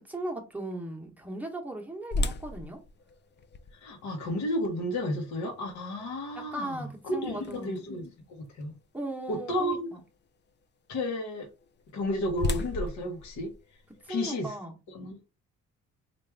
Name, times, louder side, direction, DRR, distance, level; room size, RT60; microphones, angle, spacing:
voice 1, 0.1-2.8 6.4-7.8 8.9-10.0 14.0-14.7, right 1 dB, 5° right, 1.0 m, -37 dB
sound 1, 2.1-8.1 8.6-8.7 9.3-9.5 11.6-14.3, left 2 dB, 35° left, 0.5 m, -36 dB
voice 2, 3.8-8.7 9.3-9.9 10.9-11.5 11.9-13.5 14.1-14.5 14.9-15.2, left 1 dB, 65° left, 1.0 m, -32 dB
3.3 x 2.5 x 3.3 m
cardioid pair, 90°, 30 cm